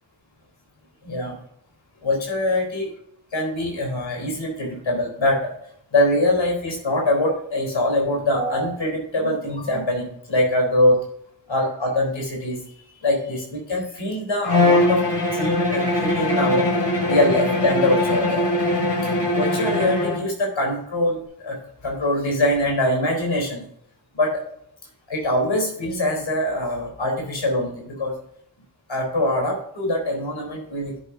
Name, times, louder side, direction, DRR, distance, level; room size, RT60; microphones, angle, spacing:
voice 1, 1.0-1.3 2.0-2.8 3.3-5.5 5.9-11.0 11.5-12.6 13.0-15.0 15.3-16.6 17.0-18.6 19.3-21.2 21.4-21.6 21.8-23.6 24.1-24.4 25.1-28.1 28.9-31.0, left 1 dB, 85° left, -1 dB, 4.1 m, -23 dB
Bowed string instrument, 14.4-20.3, left 1 dB, 65° left, 2.8 m, -21 dB
11.5 x 9.9 x 2.8 m, 0.69 s
wide cardioid pair, 70°, 44 cm